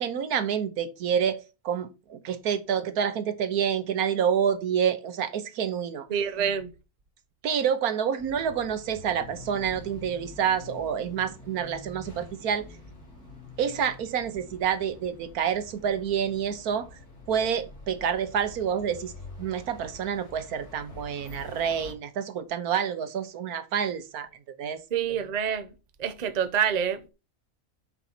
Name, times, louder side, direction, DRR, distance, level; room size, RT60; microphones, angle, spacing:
voice 1, 0.0-6.1 7.4-12.7 13.6-16.9 17.3-19.1 19.4-24.3 24.6-24.8, right 8 dB, 85° right, 1.4 m, -28 dB
voice 2, 6.1-6.7 24.9-25.7 26.0-27.1, right 8 dB, 35° right, 0.7 m, -27 dB
sound 1, 8.2-21.9, left 2 dB, 90° left, 4.1 m, -46 dB
8.1 x 4.0 x 5.8 m
omnidirectional pair, 1.5 m